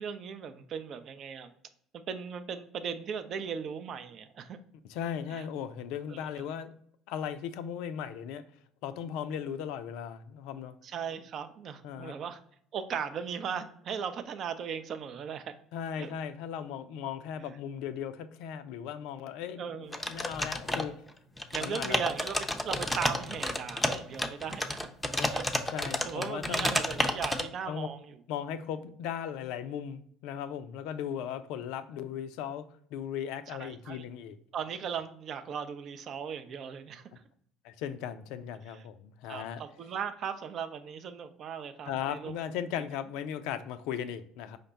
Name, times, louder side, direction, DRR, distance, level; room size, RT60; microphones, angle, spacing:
voice 1, 0.0-1.5 1.9-4.6 5.3-5.4 6.1-6.5 10.8-12.4 12.7-15.5 16.0-16.1 19.6-20.0 21.5-24.8 25.3-25.4 26.0-28.1 33.6-34.0 34.5-37.1 39.3-42.3, right 7 dB, 50° right, 0.4 m, -37 dB
voice 2, 4.8-6.7 7.1-8.4 8.8-10.8 11.8-12.2 15.7-20.9 21.6-22.0 25.1-25.4 25.7-26.8 27.7-27.9 28.3-34.4 37.6-39.6 41.9-44.6, left 8 dB, 65° left, 0.3 m, -37 dB
sound 1, 19.9-21.1 21.4-27.4, left 1 dB, 10° left, 0.5 m, -31 dB
5.1 x 2.2 x 3.9 m
hypercardioid pair, 65°, 0 cm